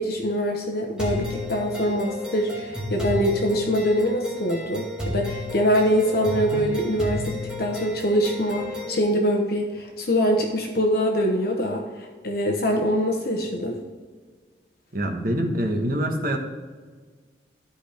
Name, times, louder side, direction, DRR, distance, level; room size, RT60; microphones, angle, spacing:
voice 1, 0.0-13.8, equal, 60° left, 2 dB, 1.0 m, -24 dB
sound 1, 1.0-9.0, left 1 dB, 5° right, 2.2 m, -32 dB
voice 2, 14.9-16.4, right 1 dB, 55° right, 2 dB, 1.3 m, -25 dB
14.0 x 5.0 x 3.5 m, 1.5 s
head